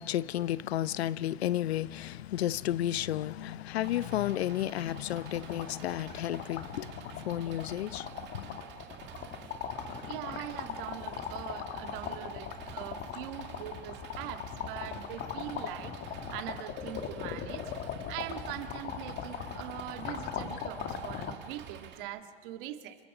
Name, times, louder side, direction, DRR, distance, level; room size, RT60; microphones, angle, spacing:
voice 1, 0.0-8.6, left 13 dB, 85° left, 0.7 m, -32 dB
sound 1, 2.2-2.4 2.7-2.8 3.1-21.3, left 7 dB, 35° left, 2.2 m, -40 dB
Engine, 3.8-22.0, right 9 dB, 35° right, 2.1 m, -50 dB
voice 2, 10.1-17.6 18.1-23.0, right 12 dB, 55° right, 2.1 m, -42 dB
30.0 x 25.5 x 5.0 m
hypercardioid pair, 125°, 31 cm